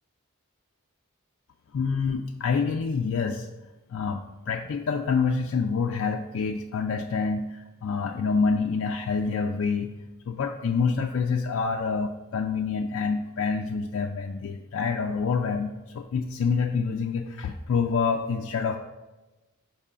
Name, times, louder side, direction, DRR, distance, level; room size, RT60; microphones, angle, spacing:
voice 1, 1.7-3.5 3.9-9.9 10.3-18.8, left 5 dB, 60° left, 3 dB, 0.3 m, -27 dB
4.7 x 3.7 x 5.5 m, 1.1 s
head